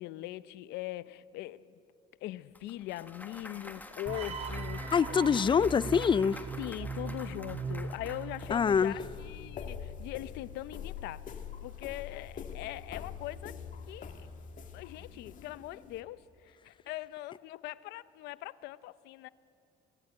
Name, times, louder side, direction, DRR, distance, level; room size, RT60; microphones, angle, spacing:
voice 1, 0.0-1.7 2.2-5.3 6.6-11.2 11.6-13.6 13.9-14.3 14.7-19.3, left 16 dB, 90° left, 0.7 m, -41 dB
Clapping / Cheering / Applause, 2.6-8.8, left 2 dB, 10° left, 1.7 m, -48 dB
sound 1, 4.1-9.2, right 4 dB, 35° right, 1.7 m, -39 dB
voice 2, 4.9-6.4 8.5-9.0, left 6 dB, 30° left, 0.5 m, -25 dB
sound 2, 8.3-16.0, left 7 dB, 50° left, 2.1 m, -44 dB
26.5 x 17.5 x 9.6 m
cardioid pair, 110°, 17 cm